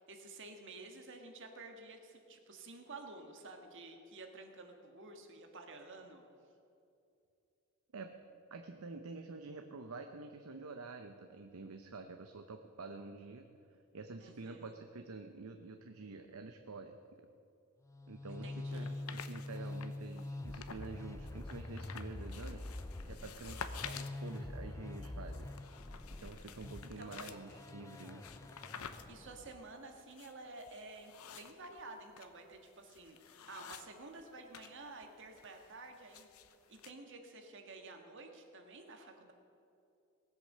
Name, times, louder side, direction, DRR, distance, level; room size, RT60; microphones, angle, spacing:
voice 1, 0.0-6.2 14.2-14.7 18.3-19.1 26.8-27.4 29.1-33.2 33.5-36.3 36.7-39.3, right 3 dB, 60° right, 4 dB, 1.7 m, -51 dB
voice 2, 8.5-13.5 13.9-17.3 18.1-22.7 23.0-25.5 26.2-28.3, right 3 dB, 80° right, 6 dB, 0.7 m, -48 dB
sound 1, 17.9-29.7, left 2 dB, 15° left, 0.4 m, -45 dB
sound 2, 18.7-20.9 21.3-34.7 35.0-36.9, left 7 dB, 80° left, 0.8 m, -51 dB
18.5 x 8.3 x 6.7 m, 2.6 s
head